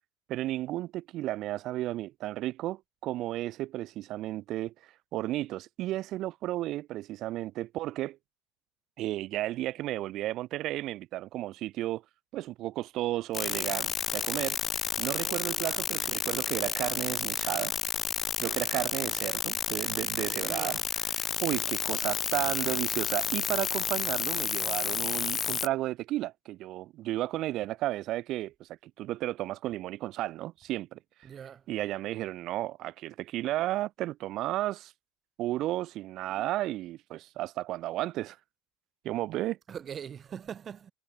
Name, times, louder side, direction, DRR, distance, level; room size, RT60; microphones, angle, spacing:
voice 1, 0.3-4.7 5.1-8.2 9.0-12.0 12.3-14.6 15.0-17.7 18.4-20.8 21.4-31.0 31.7-34.9 35.4-38.4 39.0-39.6, right 15 dB, 55° right, 0.6 m, -33 dB
sound 1, 13.3-25.7, left 7 dB, 35° left, 0.8 m, -31 dB
voice 2, 20.3-20.8 31.2-31.6 39.7-40.9, right 8 dB, 35° right, 1.0 m, -42 dB
supercardioid pair, 90°, 0 cm